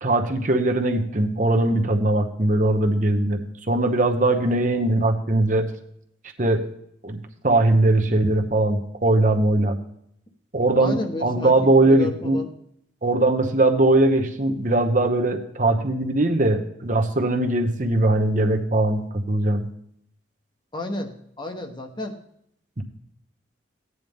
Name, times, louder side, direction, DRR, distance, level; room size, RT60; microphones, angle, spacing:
voice 1, 0.0-3.4 3.7-5.7 6.4-6.6 7.0-7.2 7.4-9.8 10.5-12.4 13.0-19.7 22.8-22.9, right 2 dB, 40° right, 5 dB, 0.9 m, -20 dB
voice 2, 10.8-12.5 20.7-22.2, left 1 dB, 25° left, 4 dB, 1.1 m, -32 dB
15.5 x 9.5 x 3.6 m, 0.72 s
head